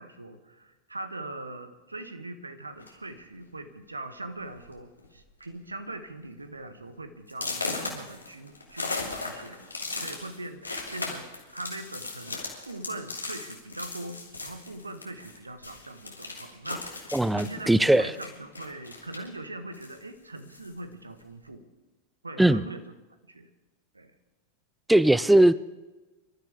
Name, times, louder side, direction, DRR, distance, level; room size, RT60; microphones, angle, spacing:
voice 1, 0.0-9.6 10.0-12.4 12.7-21.7 22.2-22.8 23.3-23.5 23.9-24.1, right 2 dB, 80° right, 9 dB, 1.3 m, -41 dB
sound 1, 2.8-3.1 3.9-4.0 4.4-4.7 5.0-5.4 5.9-6.0 6.4-6.5 7.3-15.4 15.6-19.4 19.7-20.8, left 3 dB, 80° left, 2.7 m, -37 dB
voice 2, 17.1-18.1 22.4-22.6 24.9-25.5, right 1 dB, 5° right, 18 dB, 0.4 m, -19 dB
26.0 x 13.0 x 3.5 m, 1.2 s
figure-of-eight pair, 90°, 0 cm